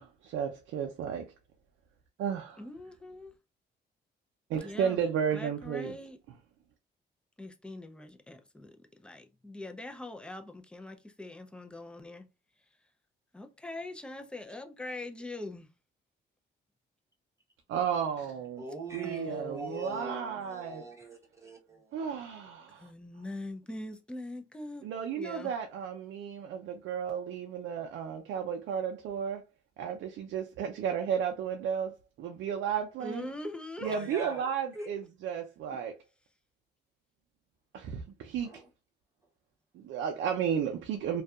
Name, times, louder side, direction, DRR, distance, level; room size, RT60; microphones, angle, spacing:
voice 1, 0.0-1.3 2.2-2.6 4.5-6.0 17.7-18.6 18.9-20.9 21.9-22.9 24.8-29.4 29.8-33.3 33.8-35.9 37.7-38.6 39.7-41.2, right 8 dB, 80° right, 0.4 m, -33 dB
voice 2, 2.6-3.3 4.6-5.0 5.3-6.2 7.4-12.3 13.3-15.7 19.0-20.0 22.7-24.9 25.2-25.5 33.0-34.0 34.7-34.9, left 2 dB, 5° left, 0.4 m, -42 dB
voice 3, 18.6-22.2 33.8-34.5 38.4-38.7, right 2 dB, 15° right, 1.1 m, -42 dB
2.6 x 2.3 x 2.3 m
cardioid pair, 90°, 19 cm